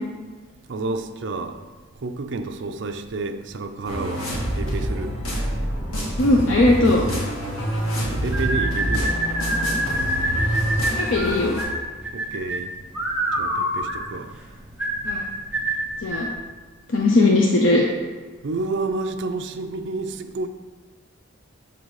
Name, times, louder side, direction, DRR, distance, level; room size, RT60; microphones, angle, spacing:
voice 1, 0.7-1.6 2.0-5.2 8.1-9.3 12.1-12.7 13.4-14.3 18.4-20.5, right 3 dB, 60° right, 0.5 m, -30 dB
sound 1, 3.8-11.6, equal, 90° left, 1.7 m, -26 dB
voice 2, 6.2-7.1 11.0-11.6 15.0-15.2 16.0-16.3 16.9-17.8, left 2 dB, 65° left, 0.6 m, -18 dB
sound 2, 8.3-16.4, right 1 dB, 5° right, 0.8 m, -26 dB
7.2 x 3.9 x 4.7 m
head